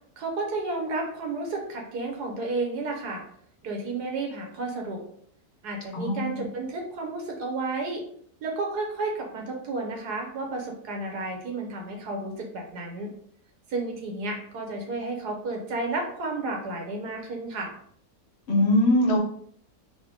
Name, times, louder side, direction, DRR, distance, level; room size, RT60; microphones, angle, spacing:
voice 1, 0.2-3.2 3.6-5.0 5.6-8.0 8.4-13.1 13.7-17.7, right 3 dB, 85° right, 1 dB, 1.6 m, -32 dB
voice 2, 5.9-6.4 18.5-19.2, left 1 dB, 50° left, 0 dB, 0.9 m, -22 dB
3.9 x 3.1 x 3.6 m, 0.63 s
omnidirectional pair, 1.7 m